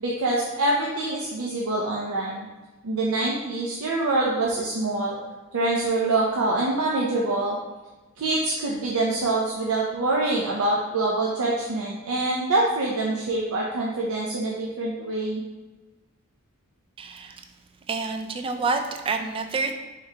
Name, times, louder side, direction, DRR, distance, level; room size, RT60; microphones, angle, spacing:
voice 1, 0.0-2.5 2.8-5.2 5.5-7.6 8.2-15.4, right 2 dB, 70° right, -3 dB, 0.6 m, -25 dB
voice 2, 17.0-17.4 17.9-19.7, right 4 dB, 25° right, 6 dB, 0.3 m, -28 dB
4.4 x 3.6 x 2.8 m, 1.2 s
head